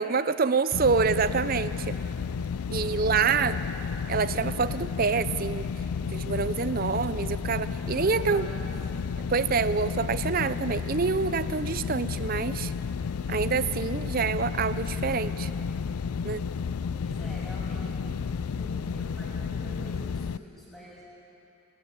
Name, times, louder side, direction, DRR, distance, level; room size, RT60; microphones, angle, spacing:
voice 1, 0.0-2.0 2.7-3.6 4.1-5.7 6.1-8.5 9.3-12.7 13.3-15.5 16.2-16.4, right 5 dB, 40° right, 14 dB, 0.5 m, -26 dB
sound 1, 0.7-20.4, left 5 dB, 85° left, 0.4 m, -32 dB
voice 2, 2.9-3.6 7.7-8.7 16.9-21.0, equal, ahead, -7 dB, 6.9 m, -46 dB
28.5 x 13.5 x 8.5 m, 2.9 s
head